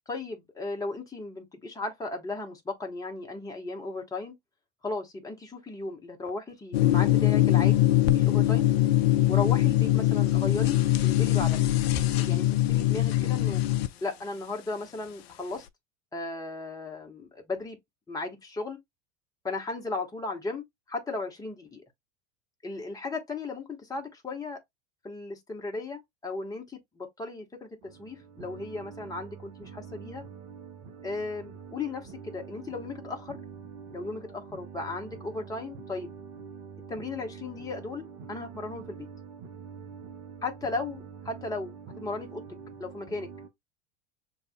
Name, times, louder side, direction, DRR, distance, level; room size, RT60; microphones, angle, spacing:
voice 1, 0.1-4.4 4.8-7.9 8.1-8.7 9.3-11.6 12.2-13.6 14.0-15.7 16.1-17.8 18.1-18.8 19.4-21.8 22.6-24.6 25.0-30.2 31.0-33.4 33.9-36.1 36.9-39.1 40.4-42.4 42.8-43.3, left 3 dB, 10° left, 1.2 m, -36 dB
sound 1, 6.7-13.9, left 14 dB, 55° left, 0.4 m, -22 dB
sound 2, 27.8-43.5, right 6 dB, 45° right, 1.0 m, -45 dB
6.4 x 3.0 x 2.2 m
figure-of-eight pair, 80°, 37 cm